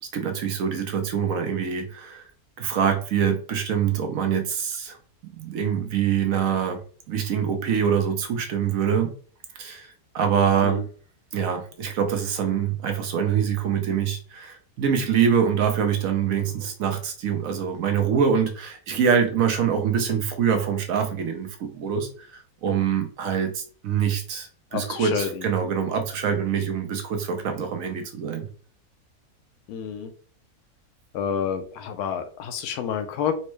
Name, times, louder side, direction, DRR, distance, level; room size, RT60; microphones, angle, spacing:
voice 1, 0.1-2.2 2.6-5.0 5.3-6.8 7.1-9.1 9.6-10.8 11.3-28.5, right 7 dB, 70° right, 5 dB, 1.0 m, -25 dB
voice 2, 24.7-25.5 29.7-30.1 31.1-33.3, left 8 dB, 85° left, 7 dB, 1.1 m, -29 dB
4.3 x 2.1 x 3.1 m, 0.42 s
omnidirectional pair, 1.6 m